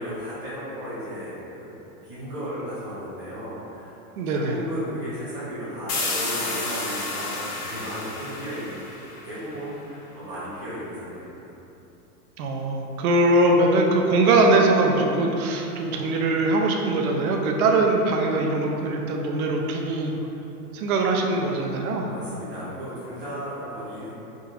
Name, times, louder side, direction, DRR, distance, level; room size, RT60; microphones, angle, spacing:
voice 1, 0.0-1.7 2.0-4.0 4.2-11.4 22.0-24.1, equal, 10° right, -14 dB, 0.8 m, -35 dB
voice 2, 4.2-4.6 12.4-20.1 20.7-22.1, right 2 dB, 65° right, 1 dB, 0.5 m, -22 dB
sound 1, 5.9-9.5, left 2 dB, 60° left, 1.0 m, -31 dB
3.7 x 2.4 x 2.8 m, 3.0 s
supercardioid pair, 165°, 47 cm